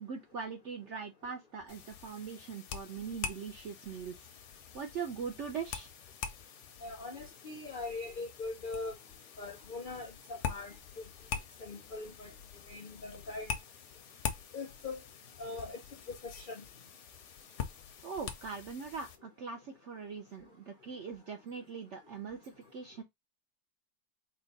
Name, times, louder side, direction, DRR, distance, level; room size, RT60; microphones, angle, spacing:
voice 1, 0.0-4.3 4.7-5.9 18.0-23.0, right 6 dB, 75° right, 0.6 m, -41 dB
sound 1, 1.7-19.2, left 7 dB, 60° left, 0.8 m, -44 dB
voice 2, 6.8-9.0 9.4-10.7 11.6-12.3 12.7-13.5 14.5-15.0 15.4-15.8 16.1-16.6, left 3 dB, 85° left, 0.4 m, -41 dB
4.4 x 2.2 x 3.9 m
omnidirectional pair, 1.9 m